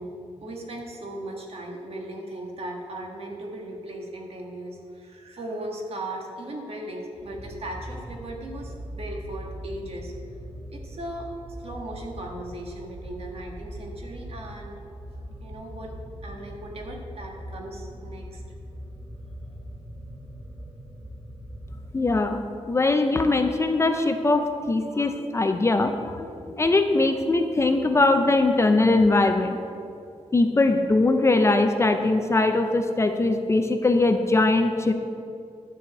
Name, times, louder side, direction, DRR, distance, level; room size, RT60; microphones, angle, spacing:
voice 1, 0.0-10.1 10.7-11.3 11.6-14.7 15.1-15.9 16.2-18.4, right 1 dB, 55° right, 0 dB, 1.6 m, -37 dB
sound 1, 7.2-22.5, equal, 5° right, 2.6 m, -40 dB
voice 2, 21.9-29.6 30.3-34.9, left 2 dB, 25° left, 7 dB, 0.5 m, -21 dB
11.5 x 4.9 x 7.8 m, 2.5 s
wide cardioid pair, 170°, 12 cm